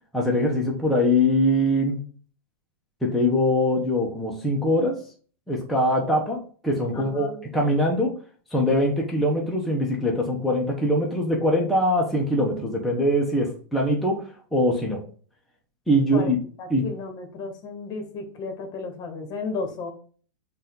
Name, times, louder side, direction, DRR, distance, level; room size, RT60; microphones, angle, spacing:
voice 1, 0.1-2.0 3.0-5.0 5.5-8.2 8.5-15.0 15.9-16.4 16.7-16.9, left 1 dB, ahead, -3 dB, 0.9 m, -23 dB
voice 2, 6.9-7.4 16.1-16.3 16.6-19.9, left 4 dB, 35° left, 5 dB, 1.3 m, -33 dB
5.3 x 2.6 x 3.8 m, 0.42 s
hypercardioid pair, 120°, 12 cm